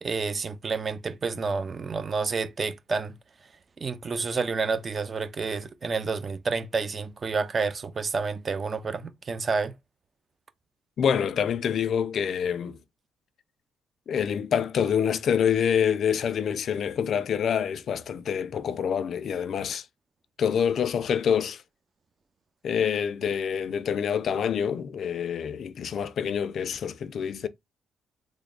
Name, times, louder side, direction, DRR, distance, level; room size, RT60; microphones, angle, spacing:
voice 1, 0.0-3.2 3.8-9.7, right 4 dB, 35° right, 0.5 m, -29 dB
voice 2, 11.0-12.8 14.1-19.9 20.4-21.6 22.6-27.5, left 8 dB, 60° left, 0.4 m, -26 dB
3.3 x 2.0 x 3.7 m
cardioid pair, 90°, 0 cm